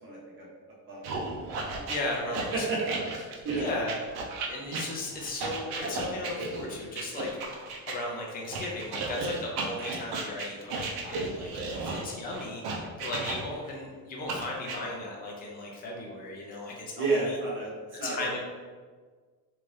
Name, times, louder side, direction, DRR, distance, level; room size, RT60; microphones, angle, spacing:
voice 1, 0.0-0.5 0.9-1.4 2.3-3.6 10.5-10.6 11.7-12.0 17.0-17.7 18.0-18.4, right 3 dB, 30° right, -5 dB, 0.9 m, -32 dB
sound 1, 1.0-8.0 8.5-13.7 14.3-14.8, right 3 dB, 70° right, 0.7 m, -34 dB
voice 2, 1.9-2.7 3.0-3.1 3.6-4.0 4.5-7.6 7.9-17.4 18.0-18.4, left 2 dB, 25° left, -2 dB, 0.5 m, -36 dB
3.4 x 2.7 x 3.1 m, 1.5 s
cardioid pair, 175°, 39 cm